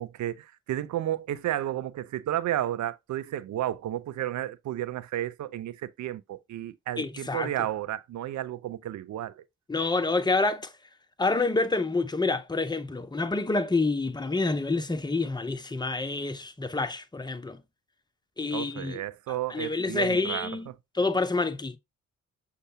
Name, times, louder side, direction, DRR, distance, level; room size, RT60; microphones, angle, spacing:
voice 1, 0.0-9.4 18.5-20.5, right 12 dB, 45° right, 0.5 m, -32 dB
voice 2, 7.0-7.5 9.7-10.7 11.2-17.6 18.4-19.0 19.3-20.7 20.9-21.8, left 3 dB, 10° left, 0.6 m, -28 dB
6.4 x 2.4 x 2.8 m
hypercardioid pair, 45°, 40 cm